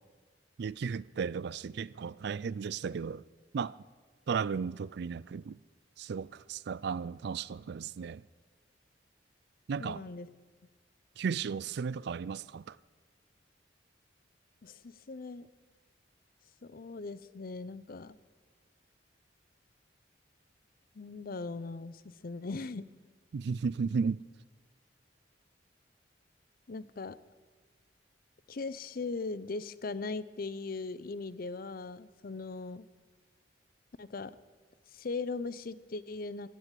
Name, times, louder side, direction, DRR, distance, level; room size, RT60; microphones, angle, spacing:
voice 1, 0.6-3.2 3.5-3.8 4.3-5.6 6.0-8.2 9.7-10.0 11.2-12.8 23.3-24.2, right 6 dB, 65° right, 0.4 m, -34 dB
voice 2, 9.8-10.3 14.6-15.5 16.6-18.2 20.9-22.9 26.7-27.2 28.5-32.9 34.0-34.3 34.9-36.5, left 3 dB, 50° left, 0.6 m, -39 dB
15.5 x 9.9 x 9.1 m
head